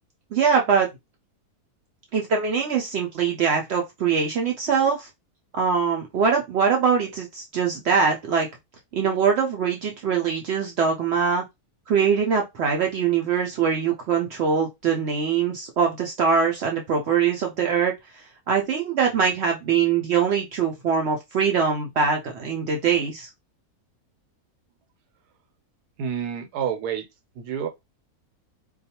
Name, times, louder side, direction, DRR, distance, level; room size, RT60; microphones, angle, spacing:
voice 1, 0.3-0.9 2.1-5.1 5.5-8.5 8.9-11.4 11.9-23.3, right 6 dB, 70° right, 0.6 m, -23 dB
voice 2, 26.0-27.1 27.3-27.7, right 8 dB, 90° right, 1.1 m, -28 dB
2.3 x 2.3 x 2.8 m
omnidirectional pair, 1.6 m